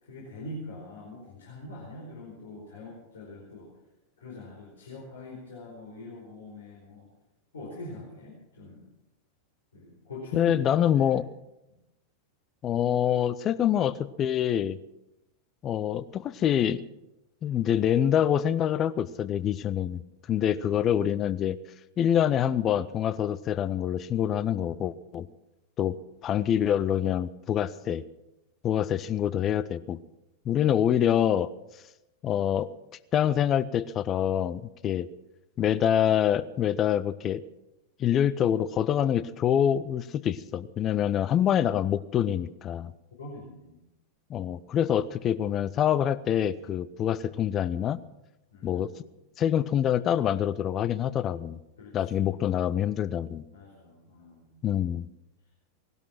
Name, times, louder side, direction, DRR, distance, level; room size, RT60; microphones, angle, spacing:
voice 1, 0.0-3.7 4.2-7.1 7.5-8.8 9.7-11.1 11.7-11.8 20.4-20.9 40.9-41.1 43.2-43.8 48.5-49.0 51.8-52.3 53.5-54.6, left 1 dB, 65° left, -3 dB, 4.6 m, -43 dB
voice 2, 10.3-11.3 12.6-14.8 15.6-16.8 17.4-20.0 20.3-21.6 22.0-25.3 25.8-26.0 26.2-28.0 28.6-30.0 30.4-31.5 32.2-32.7 33.1-35.1 35.6-37.4 38.0-42.9 44.3-48.0 48.6-48.9 49.4-51.6 51.9-53.4 54.6-55.1, left 10 dB, 30° left, 16 dB, 0.7 m, -26 dB
19.0 x 12.5 x 6.0 m, 0.93 s
figure-of-eight pair, 90°, 0 cm